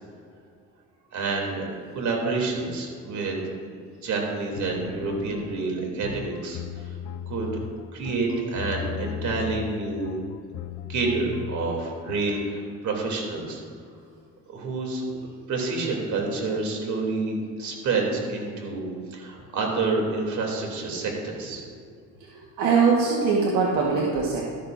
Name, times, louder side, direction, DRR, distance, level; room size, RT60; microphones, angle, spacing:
voice 1, 1.1-3.4 3.8-6.9 7.3-7.5 7.9-10.2 10.9-13.6 14.5-15.0 15.5-21.6, right 3 dB, 65° right, 0 dB, 3.0 m, -28 dB
sound 1, 4.6-12.5, left 10 dB, 65° left, 0.6 m, -37 dB
voice 2, 22.3-24.5, right 5 dB, 85° right, -3 dB, 1.5 m, -22 dB
13.0 x 12.5 x 2.6 m, 2.2 s
supercardioid pair, 85°, 32 cm